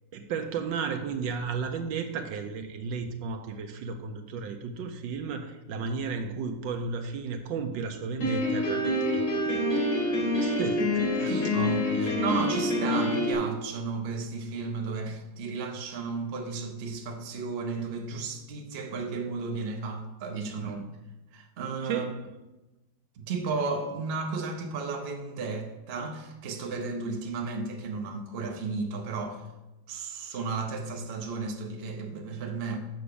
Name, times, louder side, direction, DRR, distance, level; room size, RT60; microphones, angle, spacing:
voice 1, 0.1-11.6 11.9-12.4 20.6-20.8 21.8-22.2, right 5 dB, 75° right, 6 dB, 1.3 m, -34 dB
Piano, 8.2-13.3, left 1 dB, 85° left, 3.8 m, -26 dB
voice 2, 11.2-20.8 21.3-22.1 23.2-29.4 29.9-32.8, right 4 dB, 45° right, 4 dB, 0.8 m, -33 dB
6.9 x 4.9 x 6.8 m, 1.0 s
omnidirectional pair, 2.2 m